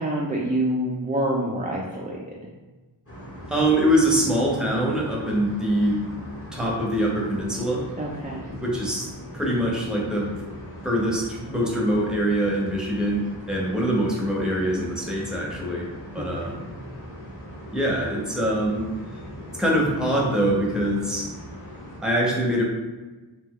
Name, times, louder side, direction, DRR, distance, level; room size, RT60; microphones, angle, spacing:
voice 1, 0.0-2.4 8.0-8.6 16.2-16.7, right 1 dB, 20° right, -2 dB, 0.3 m, -27 dB
sound 1, 3.1-22.0, equal, 25° left, 0.9 m, -40 dB
voice 2, 3.5-6.0 6.5-7.8 8.6-9.1 9.3-10.3 10.8-15.9 16.1-16.6 17.7-18.8 19.6-21.3 22.0-22.6, right 1 dB, ahead, -3 dB, 0.7 m, -23 dB
2.7 x 2.2 x 3.6 m, 1.2 s
wide cardioid pair, 45°, 49 cm